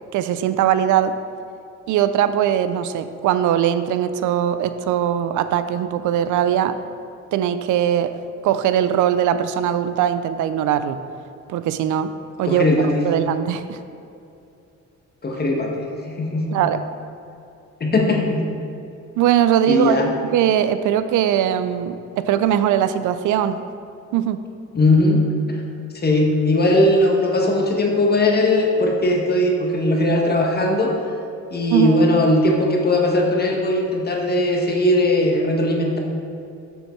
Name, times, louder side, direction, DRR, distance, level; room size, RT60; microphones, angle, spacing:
voice 1, 0.1-1.2 1.9-6.8 7.3-8.1 8.4-11.0 11.5-12.1 12.4-12.7 13.0-13.8 16.5-16.8 19.2-23.6 24.1-24.4 31.7-32.0, right 10 dB, 80° right, 11 dB, 0.5 m, -20 dB
voice 2, 12.4-13.0 15.2-16.5 17.8-18.4 19.7-20.1 24.7-25.3 25.9-30.9 31.5-36.0, left 1 dB, 30° left, 0 dB, 1.4 m, -19 dB
6.7 x 6.5 x 4.5 m, 2.6 s
cardioid pair, 90°, 30 cm